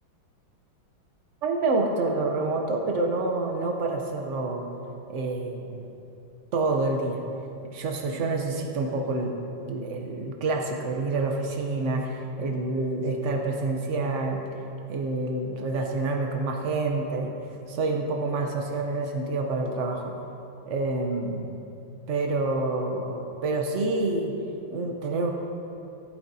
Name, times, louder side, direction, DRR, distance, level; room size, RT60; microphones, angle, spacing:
voice 1, 1.4-4.7 5.1-5.8 6.5-7.2 7.7-9.3 9.7-14.4 14.9-17.3 17.7-20.1 20.7-21.5 22.1-24.3 24.7-25.3, right 3 dB, 80° right, 2 dB, 0.6 m, -27 dB
14.5 x 8.6 x 2.7 m, 2.7 s
omnidirectional pair, 2.3 m